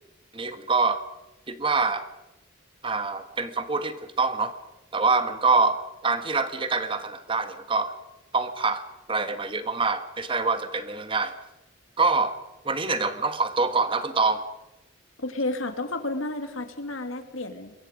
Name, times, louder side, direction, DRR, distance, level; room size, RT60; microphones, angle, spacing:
voice 1, 0.3-1.0 1.5-2.0 2.8-4.5 4.9-7.9 8.3-8.8 9.1-11.3 12.0-12.3 12.6-14.4, right 4 dB, 25° right, 9 dB, 1.4 m, -25 dB
voice 2, 15.2-17.7, left 2 dB, 90° left, 7 dB, 2.4 m, -31 dB
28.0 x 22.5 x 5.1 m, 0.99 s
head